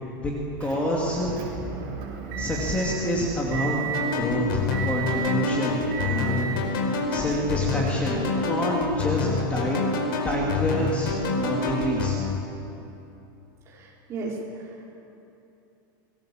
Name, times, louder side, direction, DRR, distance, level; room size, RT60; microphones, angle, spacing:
voice 1, 0.6-1.3 2.4-3.9 4.1-8.2 8.4-9.8 10.2-12.2, equal, 10° left, -3 dB, 2.7 m, -28 dB
Motor vehicle (road) / Engine, 0.6-6.7, right 6 dB, 50° right, 6.8 m, -33 dB
sound 1, 3.9-12.2, left 3 dB, 80° left, 4.8 m, -27 dB
voice 2, 13.7-14.9, right 2 dB, 25° right, -4 dB, 5.5 m, -35 dB
26.0 x 20.5 x 7.4 m, 2.9 s
supercardioid pair, 165°, 12 cm